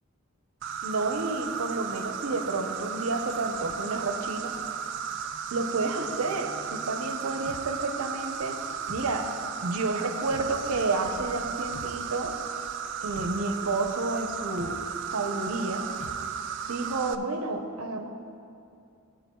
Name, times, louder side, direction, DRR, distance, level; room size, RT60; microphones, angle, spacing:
Insect, 0.6-17.2, right 7 dB, 55° right, 0.3 m, -35 dB
voice 1, 0.8-4.5 5.5-8.6 8.9-9.3 9.6-12.3 13.0-14.8 15.1-15.8 16.7-18.1, right 3 dB, 75° right, 5 dB, 0.7 m, -30 dB
sound 1, 7.5-7.7 8.9-9.1 10.3-10.5 11.7-11.9 13.2-13.4 14.6-14.8 16.0-16.2, left 3 dB, 75° left, 0.6 m, -43 dB
17.0 x 7.7 x 2.3 m, 2.6 s
head